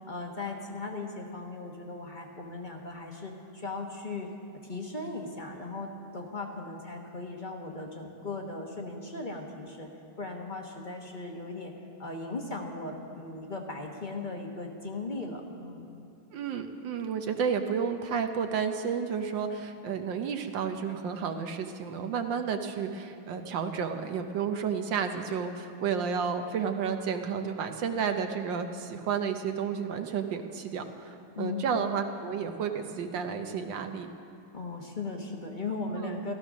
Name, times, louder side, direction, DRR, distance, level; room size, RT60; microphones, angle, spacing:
voice 1, 0.1-4.3 4.7-9.9 10.2-11.7 12.0-15.9 31.3-31.7 34.5-36.3, left 3 dB, 30° left, 1 dB, 0.8 m, -37 dB
voice 2, 16.3-34.1 35.9-36.2, right 6 dB, 65° right, 6 dB, 1.3 m, -31 dB
14.5 x 14.5 x 6.2 m, 2.6 s
omnidirectional pair, 2.4 m